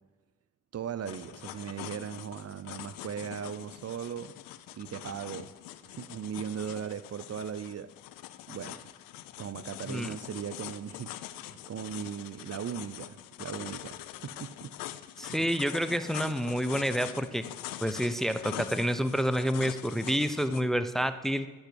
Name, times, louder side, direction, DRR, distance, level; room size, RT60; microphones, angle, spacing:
voice 1, 0.7-4.3 4.7-5.5 5.9-7.9 8.5-8.9 9.4-14.7 15.3-15.4, right 8 dB, 45° right, 13 dB, 0.6 m, -38 dB
sound 1, 1.1-20.6, left 14 dB, 85° left, 0.5 m, -43 dB
voice 2, 15.2-17.5 17.8-21.5, equal, ahead, 10 dB, 0.8 m, -29 dB
10.0 x 6.2 x 8.3 m, 1.2 s
hypercardioid pair, 40°, 33 cm